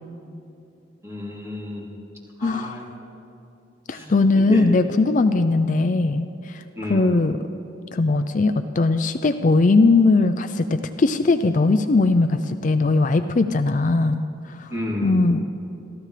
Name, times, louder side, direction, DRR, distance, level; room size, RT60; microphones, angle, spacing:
voice 1, 1.0-1.9 2.4-2.8 3.9-4.6 6.7-7.2 14.7-15.3, left 1 dB, 15° right, -4 dB, 3.2 m, -31 dB
voice 2, 2.4-2.8 3.9-6.6 6.9-7.4 7.9-14.2 14.5-14.7 15.0-15.4, left 3 dB, 45° left, 9 dB, 0.5 m, -19 dB
30.0 x 13.5 x 3.3 m, 2.8 s
head